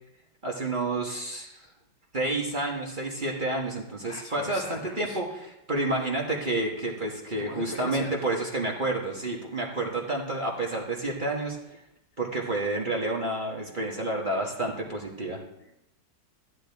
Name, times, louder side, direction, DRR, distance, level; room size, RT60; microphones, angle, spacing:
voice 1, 0.4-1.6 2.1-11.8 12.2-15.4, right 2 dB, 30° right, -2 dB, 1.5 m, -30 dB
voice 2, 4.0-5.2 7.4-8.2 15.6-15.7, left 3 dB, 75° left, 1 dB, 2.3 m, -40 dB
14.0 x 11.0 x 3.5 m, 0.83 s
omnidirectional pair, 2.0 m